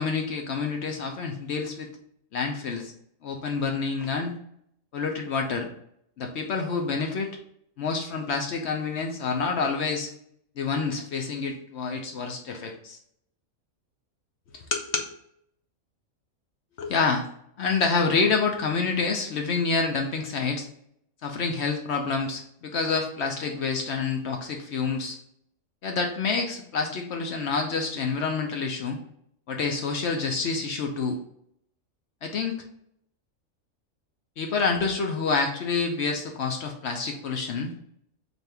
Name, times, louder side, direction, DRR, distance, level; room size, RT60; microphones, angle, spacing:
voice 1, 0.0-1.9 2.3-2.9 3.2-4.3 4.9-5.7 6.2-7.4 7.8-10.1 10.6-13.0 14.5-15.1 16.8-17.3 17.6-20.7 21.2-25.2 25.8-29.0 29.5-31.2 32.2-32.6 34.4-37.7, left 4 dB, 65° left, 3 dB, 0.8 m, -28 dB
4.1 x 2.7 x 3.3 m, 0.71 s
omnidirectional pair, 1.4 m